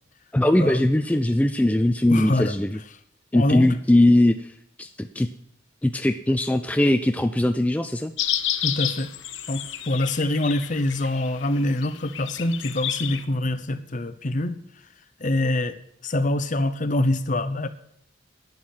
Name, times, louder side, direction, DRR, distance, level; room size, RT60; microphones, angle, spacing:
voice 1, 0.3-2.8 3.3-4.5 4.8-5.3 5.8-8.1, left 1 dB, 10° left, 8 dB, 0.4 m, -20 dB
voice 2, 2.1-2.5 3.3-3.7 8.6-9.1 9.5-14.6 15.2-15.8 16.0-17.7, left 1 dB, 40° left, 11 dB, 0.9 m, -25 dB
sound 1, 8.2-13.2, left 11 dB, 90° left, 0.9 m, -30 dB
11.0 x 9.5 x 7.3 m, 0.72 s
head